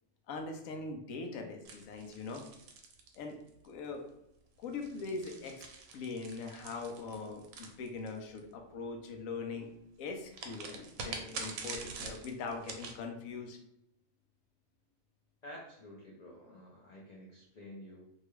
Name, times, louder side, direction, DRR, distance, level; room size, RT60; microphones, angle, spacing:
voice 1, 0.3-2.4 3.1-3.4 3.6-4.1 4.6-5.6 5.9-9.7 10.0-13.6, left 4 dB, 85° left, 3 dB, 1.0 m, -41 dB
sound 1, 1.6-3.7 4.6-8.4 10.3-13.0, right 4 dB, 85° right, 1.0 m, -45 dB
voice 2, 15.4-18.0, left 1 dB, 55° left, -4 dB, 0.5 m, -50 dB
2.8 x 2.3 x 3.0 m, 0.82 s
omnidirectional pair, 1.4 m